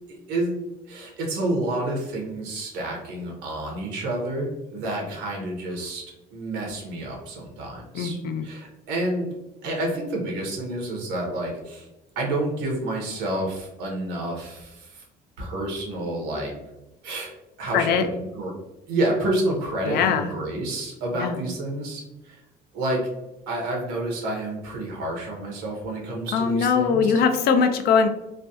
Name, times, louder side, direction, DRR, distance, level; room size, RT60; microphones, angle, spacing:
voice 1, 0.1-0.6 0.9-9.3 9.6-11.9 12.2-15.0 15.4-16.5 17.0-17.3 17.6-18.5 18.9-22.4 22.7-23.1 23.5-27.1, right 1 dB, 90° right, -1 dB, 1.0 m, -29 dB
voice 2, 7.9-8.4 17.7-18.1 19.9-20.3 21.1-21.4 26.3-28.1, left 6 dB, 65° left, 7 dB, 0.4 m, -21 dB
3.2 x 2.2 x 2.7 m, 0.98 s
cardioid pair, 110°, 17 cm